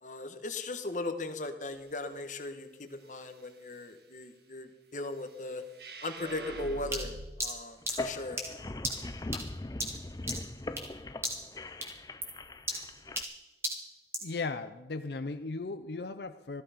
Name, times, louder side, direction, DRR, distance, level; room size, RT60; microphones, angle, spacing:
voice 1, 0.0-5.6 6.0-7.1 7.4-8.4, left 2 dB, 45° left, 7 dB, 1.3 m, -38 dB
sound 1, 5.7-7.2, right 2 dB, 65° right, 1.5 m, -42 dB
sound 2, 6.9-11.0 11.2-11.6 11.8-14.4, right 1 dB, 15° right, 2.0 m, -37 dB
sound 3, 7.8-13.2, left 2 dB, 20° left, 0.5 m, -40 dB
voice 2, 14.2-16.6, left 3 dB, 70° left, 9 dB, 0.6 m, -37 dB
15.5 x 13.5 x 5.1 m, 1.1 s
head